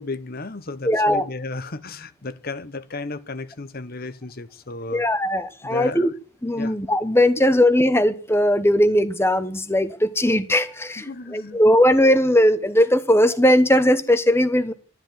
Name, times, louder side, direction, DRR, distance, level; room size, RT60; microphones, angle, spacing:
voice 1, 0.0-5.0 5.6-6.1 6.6-6.8 11.1-11.6, left 3 dB, 45° left, 1.0 m, -34 dB
voice 2, 0.9-1.3 4.9-6.1 6.4-14.7, left 1 dB, 10° left, 1.1 m, -19 dB
12.5 x 12.0 x 9.3 m
head